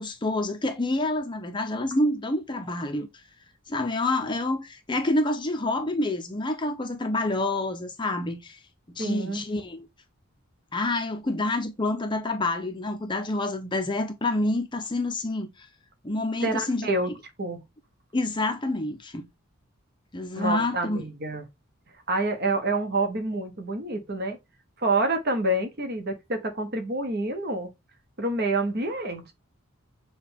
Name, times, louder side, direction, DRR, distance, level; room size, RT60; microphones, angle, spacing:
voice 1, 0.0-3.1 3.7-8.6 8.9-9.9 10.7-15.7 16.0-17.1 18.1-19.2 20.1-21.0, left 2 dB, 20° left, 0.5 m, -28 dB
voice 2, 9.0-9.4 16.4-17.1 17.4-17.6 20.3-21.5 22.1-24.4 24.8-27.7 28.2-29.3, right 2 dB, 45° right, 1.0 m, -27 dB
6.7 x 2.3 x 3.4 m
head